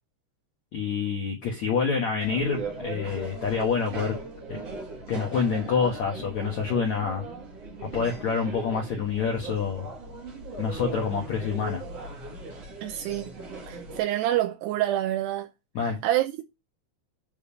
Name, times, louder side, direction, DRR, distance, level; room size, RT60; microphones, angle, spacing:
voice 1, 0.7-4.2 5.1-7.2 7.8-9.9 10.6-11.8 15.7-16.0, left 6 dB, 70° left, 1.7 m, -27 dB
sound 1, 2.2-14.0, right 3 dB, 55° right, 1.8 m, -38 dB
voice 2, 12.8-13.3 13.7-15.5 15.8-16.4, right 13 dB, 90° right, 2.4 m, -27 dB
9.4 x 3.5 x 6.9 m
omnidirectional pair, 5.6 m